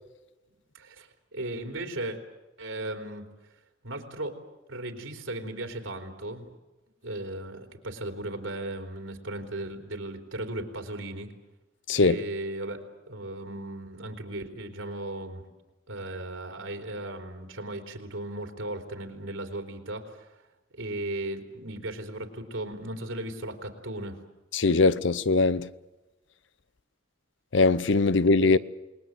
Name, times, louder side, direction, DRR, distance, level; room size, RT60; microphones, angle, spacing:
voice 1, 0.7-2.2 2.6-3.2 3.8-4.4 4.7-6.5 7.0-11.3 12.0-12.8 13.1-15.4 15.9-20.3 20.7-24.2 28.4-28.6, right 1 dB, 85° right, 3.5 m, -36 dB
voice 2, 24.5-25.7 27.5-28.6, left 3 dB, 70° left, 0.7 m, -21 dB
28.0 x 20.0 x 7.9 m
head